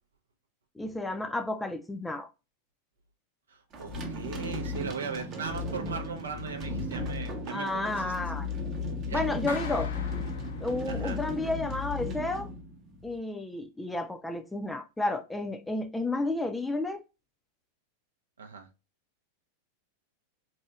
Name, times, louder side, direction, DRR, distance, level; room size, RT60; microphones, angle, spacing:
voice 1, 0.8-2.3 7.5-8.5 9.1-9.9 10.6-12.5 13.0-17.0, left 2 dB, 5° left, 0.5 m, -31 dB
voice 2, 3.5-8.1 9.0-9.2 10.9-11.2 18.4-18.7, right 5 dB, 70° right, 0.6 m, -38 dB
sound 1, 3.7-13.2, left 2 dB, 35° right, 0.8 m, -35 dB
Clapping, 9.5-11.2, left 6 dB, 65° left, 0.5 m, -42 dB
4.1 x 2.7 x 2.3 m
figure-of-eight pair, 90°, 0 cm